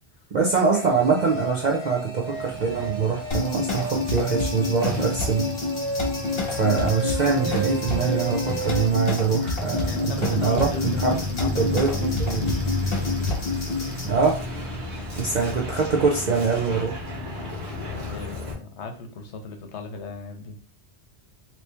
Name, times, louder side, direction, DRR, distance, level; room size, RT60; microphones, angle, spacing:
voice 1, 0.3-5.4 6.6-11.2 11.4-12.5 14.0-14.4 15.2-16.9, right 5 dB, 50° right, -1 dB, 0.6 m, -24 dB
sound 1, 0.7-8.9, right 2 dB, 10° left, 1.0 m, -34 dB
Truck, 2.3-18.5, left 2 dB, 80° right, 1.4 m, -33 dB
sound 2, 3.3-14.1, left 3 dB, 60° left, 1.3 m, -28 dB
voice 2, 9.9-12.0 18.1-20.6, left 4 dB, 80° left, 6 dB, 1.0 m, -37 dB
3.0 x 2.8 x 3.3 m, 0.39 s
omnidirectional pair, 1.1 m